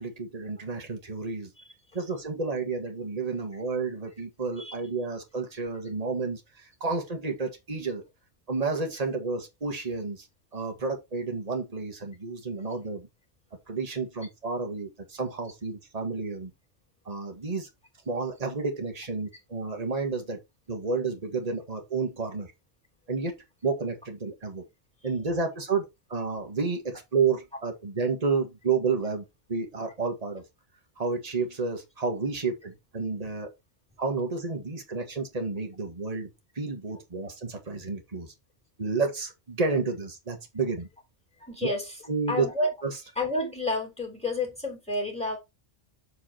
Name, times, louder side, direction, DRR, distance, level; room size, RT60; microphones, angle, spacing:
voice 1, 0.0-1.5 1.9-6.4 6.8-8.0 8.5-10.3 10.5-13.1 13.7-16.5 17.1-17.7 18.1-20.4 20.7-22.5 23.1-23.3 23.6-24.6 25.0-29.2 29.5-30.4 31.0-33.5 34.0-38.3 38.8-40.9 41.6-41.7 42.1-42.5 42.8-43.0, right 4 dB, 35° right, 1.8 m, -30 dB
voice 2, 41.4-41.8 42.3-42.7 43.2-45.4, left 2 dB, 5° left, 3.3 m, -29 dB
7.1 x 5.1 x 4.3 m
omnidirectional pair, 1.2 m